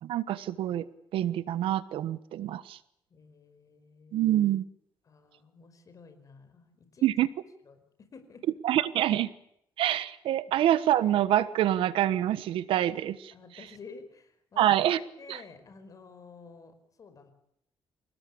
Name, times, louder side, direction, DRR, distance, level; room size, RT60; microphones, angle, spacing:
voice 1, 0.0-0.9 1.1-2.8 4.1-4.6 7.0-7.3 8.6-9.3 9.8-13.3 14.6-15.0 15.3-15.4, right 12 dB, 90° right, 15 dB, 1.2 m, -26 dB
voice 2, 3.1-4.3 5.0-7.1 7.6-8.4 13.3-14.6 15.2-17.3, left 4 dB, 40° left, 9 dB, 5.0 m, -51 dB
27.5 x 18.0 x 8.6 m, 0.75 s
cardioid pair, 130°, 9 cm